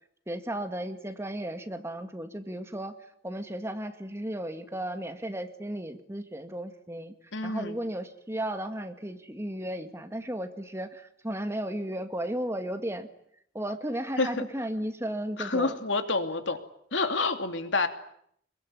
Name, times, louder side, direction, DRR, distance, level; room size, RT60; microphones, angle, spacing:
voice 1, 0.3-2.9 3.2-7.1 7.4-13.1 13.5-15.8, right 1 dB, 15° right, 7 dB, 2.0 m, -34 dB
voice 2, 7.3-7.8 14.2-14.4 15.4-16.6 16.9-17.9, left 3 dB, 75° left, 7 dB, 2.9 m, -28 dB
25.5 x 23.0 x 10.0 m, 0.69 s
head